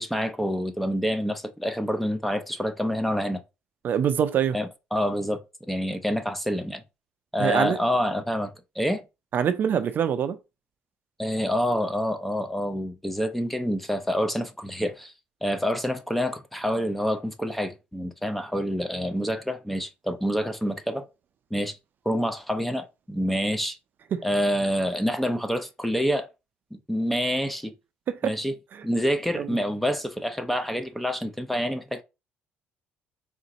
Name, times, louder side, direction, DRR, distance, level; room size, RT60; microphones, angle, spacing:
voice 1, 0.0-3.4 4.5-6.8 7.3-9.0 11.2-15.1 15.4-21.0 21.5-21.8 22.1-23.8 24.2-26.3 26.7-27.7 28.2-28.5 28.8-32.0, equal, 5° left, 0.5 m, -27 dB
voice 2, 3.8-4.6 7.4-7.8 9.3-10.4 24.1-24.2 28.1-28.3 29.4-29.5, right 8 dB, 50° right, 0.5 m, -24 dB
3.8 x 2.5 x 4.0 m
cardioid pair, 110°, 4 cm